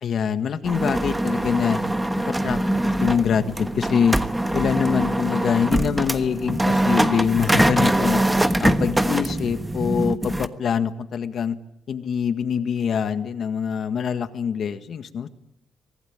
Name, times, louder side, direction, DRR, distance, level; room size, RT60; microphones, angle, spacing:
voice 1, 0.0-1.8 2.4-4.2 4.5-8.2 8.6-11.6 11.9-15.3, left 7 dB, 60° left, 9 dB, 1.7 m, -24 dB
sound 1, 0.6-10.5, right 1 dB, 10° right, 1.3 m, -23 dB
24.0 x 16.5 x 8.9 m, 0.82 s
cardioid pair, 90°, 0 cm